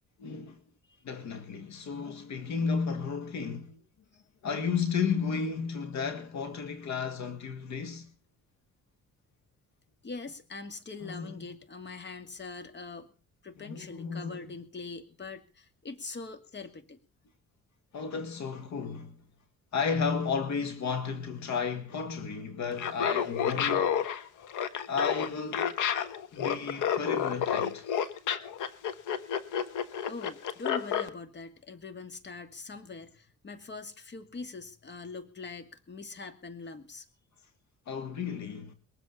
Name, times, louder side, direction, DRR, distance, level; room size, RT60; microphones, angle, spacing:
voice 1, 0.2-0.6 1.0-3.8 4.4-8.1 11.0-11.3 13.6-14.4 17.9-19.1 19.7-24.1 24.9-25.7 26.3-27.9 37.9-38.7, left 5 dB, 65° left, 2.0 m, -33 dB
voice 2, 10.0-13.1 13.4-17.0 30.0-37.1, left 4 dB, 35° left, 2.5 m, -43 dB
Laughter, 22.7-31.1, left 8 dB, 85° left, 1.4 m, -30 dB
21.5 x 8.1 x 7.2 m
cardioid pair, 90°, 30 cm